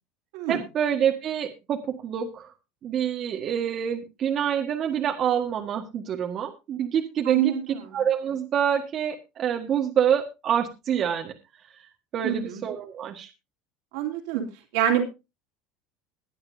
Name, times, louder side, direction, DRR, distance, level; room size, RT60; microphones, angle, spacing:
voice 1, 0.5-2.5 2.8-7.5 7.9-11.3 12.1-13.3, right 8 dB, 45° right, 2 dB, 1.7 m, -26 dB
voice 2, 7.2-8.0 12.2-12.6 13.9-14.5 14.7-15.0, right 10 dB, 80° right, 2 dB, 3.1 m, -26 dB
21.5 x 8.7 x 2.7 m, 0.27 s
supercardioid pair, 115°, 0 cm